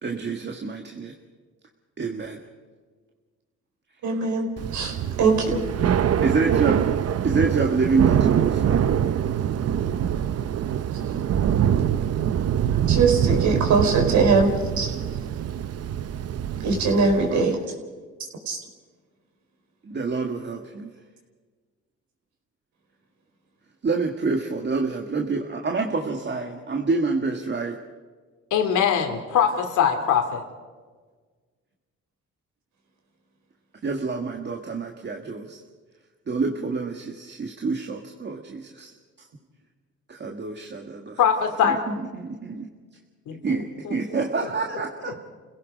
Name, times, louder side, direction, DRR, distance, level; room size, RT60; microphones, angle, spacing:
voice 1, 0.0-1.1 2.0-2.4 5.8-6.8 7.2-9.0 17.3-17.4 19.8-20.9 23.8-27.8 33.8-35.6 36.3-38.9 40.1-41.2 41.6-42.7 43.4-45.2, right 4 dB, 35° right, 2 dB, 1.7 m, -27 dB
voice 2, 4.0-4.5 4.7-5.6 12.9-14.5 14.8-15.0 16.6-17.6 18.5-18.6, right 4 dB, 75° right, 3 dB, 4.6 m, -21 dB
Thunder / Rain, 4.6-17.5, right 9 dB, 55° right, 0.8 m, -24 dB
voice 3, 28.5-30.4 41.2-41.8 43.3-44.5, left 8 dB, 80° left, 6 dB, 3.0 m, -23 dB
30.0 x 17.0 x 5.2 m, 1.5 s
cardioid pair, 90°, 30 cm